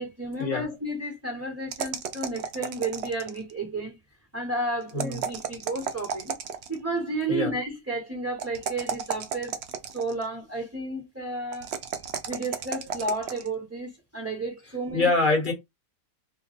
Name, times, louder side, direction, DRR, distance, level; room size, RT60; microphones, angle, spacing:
voice 1, 0.0-4.0 4.3-6.4 6.7-9.6 9.9-15.1, right 2 dB, 10° right, 1.0 m, -32 dB
sound 1, 1.7-3.5 4.9-6.8 8.4-10.2 11.5-13.5, right 7 dB, 80° right, 0.6 m, -33 dB
voice 2, 14.9-15.5, left 3 dB, 30° left, 1.2 m, -24 dB
3.0 x 2.3 x 3.9 m
omnidirectional pair, 1.8 m